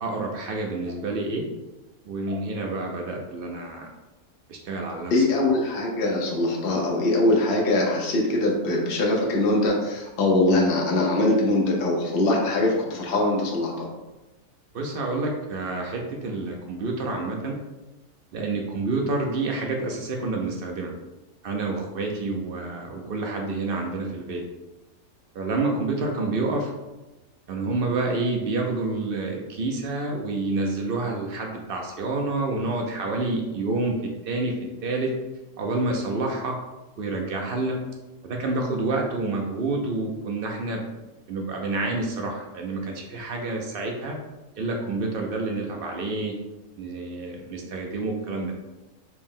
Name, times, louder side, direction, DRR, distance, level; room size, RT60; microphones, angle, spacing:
voice 1, 0.0-1.4 2.1-3.9 4.5-5.2 14.7-17.6 18.3-20.9 21.4-24.4 25.3-26.7 27.5-34.0 34.3-34.5 34.8-35.1 35.6-36.6 37.0-37.8 38.2-40.8 41.3-44.2 44.6-46.3 46.8-48.5, right 3 dB, 70° right, 1 dB, 0.5 m, -28 dB
voice 2, 5.1-13.9, left 2 dB, 50° left, -1 dB, 0.9 m, -22 dB
4.4 x 2.0 x 3.6 m, 1.1 s
omnidirectional pair, 1.5 m